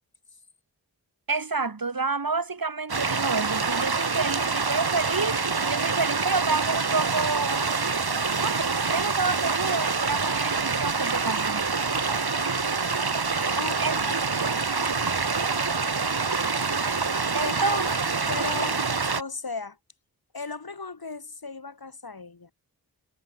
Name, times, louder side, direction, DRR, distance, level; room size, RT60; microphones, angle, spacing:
voice 1, 1.3-7.6 8.4-11.8 13.8-14.0 17.3-18.1, right 4 dB, 65° right, 4.0 m, -29 dB
sound 1, 2.9-19.2, right 4 dB, 85° right, 5.9 m, -26 dB
voice 2, 13.5-14.2 14.8-15.1 17.4-17.8 18.3-18.9 19.2-19.8 20.3-22.5, left 4 dB, 75° left, 7.7 m, -36 dB
wide cardioid pair, 55°, 37 cm